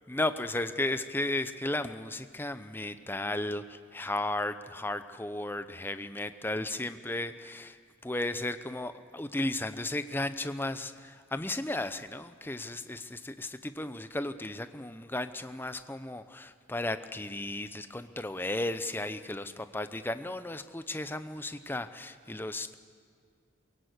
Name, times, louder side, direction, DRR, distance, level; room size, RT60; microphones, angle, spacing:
voice 1, 0.1-22.8, left 2 dB, 10° left, 11 dB, 0.7 m, -34 dB
22.5 x 17.0 x 8.2 m, 2.2 s
head